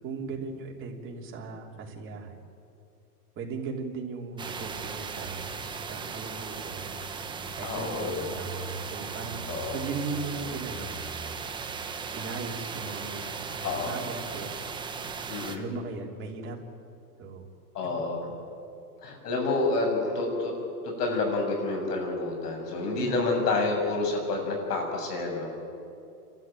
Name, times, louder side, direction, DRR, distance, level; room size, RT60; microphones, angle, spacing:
voice 1, 0.0-2.4 3.4-5.6 5.9-7.0 7.6-10.9 12.1-14.5 15.5-16.6 17.2-17.5 22.9-23.2, right 4 dB, 25° right, 0 dB, 3.3 m, -37 dB
sound 1, 4.4-15.6, right 5 dB, 10° right, 1.0 m, -37 dB
voice 2, 7.6-8.3 9.5-9.8 13.6-13.9 15.3-15.6 17.7-18.3 19.0-20.5 20.8-25.5, left 3 dB, 75° left, 2 dB, 7.5 m, -29 dB
30.0 x 13.5 x 9.2 m, 2.6 s
supercardioid pair, 145°, 47 cm